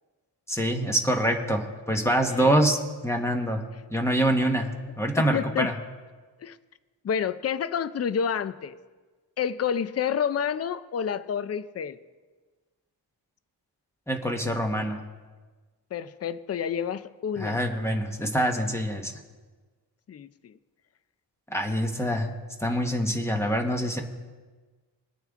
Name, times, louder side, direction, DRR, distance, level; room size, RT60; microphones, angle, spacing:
voice 1, 0.5-2.8 3.0-3.6 3.9-4.7 5.0-5.7 14.1-15.0 17.4-19.1 21.5-22.3 22.6-24.0, equal, 5° left, 3 dB, 1.2 m, -25 dB
voice 2, 2.3-2.7 5.3-5.7 6.4-6.6 7.0-8.8 9.4-12.0 15.9-17.6 20.1-20.5, left 7 dB, 35° left, 14 dB, 0.4 m, -29 dB
22.0 x 9.1 x 3.6 m, 1.4 s
wide cardioid pair, 145°, 43 cm